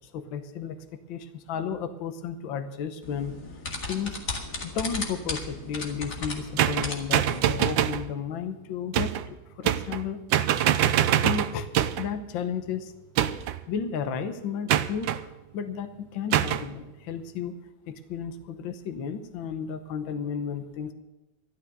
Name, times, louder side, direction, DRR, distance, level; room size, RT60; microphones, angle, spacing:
voice 1, 0.1-0.8 1.1-3.3 3.9-4.2 4.6-10.2 11.2-11.7 12.0-12.9 13.7-17.6 17.9-20.9, left 7 dB, 70° left, 9 dB, 1.7 m, -33 dB
sound 1, 3.0-7.7, left 3 dB, 40° left, 2.3 m, -36 dB
sound 2, 6.6-8.1 8.9-9.3 9.6-10.1 10.3-12.1 13.2-13.6 14.7-15.2 16.3-16.7, right 11 dB, 75° right, 1.3 m, -24 dB
12.5 x 12.5 x 6.7 m, 1.0 s
omnidirectional pair, 2.3 m